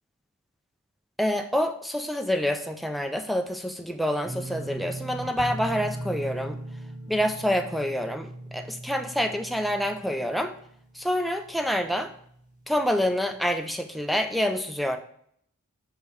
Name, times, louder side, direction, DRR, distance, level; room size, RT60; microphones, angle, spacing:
voice 1, 1.2-6.6 7.1-10.5 10.9-12.1 12.7-15.0, equal, ahead, 6 dB, 0.5 m, -27 dB
sound 1, 4.2-11.1 11.4-11.9 12.3-12.4, right 1 dB, 30° right, 1.6 m, -38 dB
6.6 x 5.1 x 4.9 m, 0.66 s
head